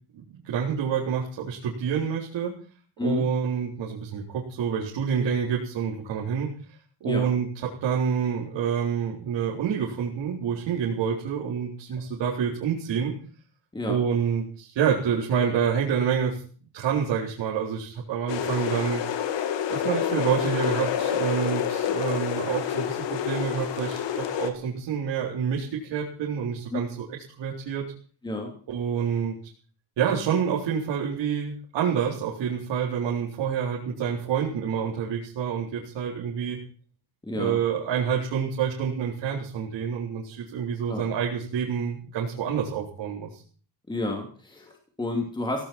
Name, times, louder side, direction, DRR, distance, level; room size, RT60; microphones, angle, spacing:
voice 1, 0.1-2.5 3.0-6.5 7.0-13.1 13.8-16.4 16.7-19.0 19.7-27.8 28.7-29.4 30.0-36.6 37.3-43.4, right 7 dB, 70° right, -3 dB, 4.2 m, -27 dB
sound 1, 18.3-24.5, left 9 dB, 75° left, 2.6 m, -28 dB
voice 2, 37.2-37.6 40.9-41.0 43.9-45.7, left 2 dB, 10° left, 2 dB, 2.8 m, -30 dB
17.5 x 17.0 x 4.5 m, 0.42 s
cardioid pair, 180°, 44 cm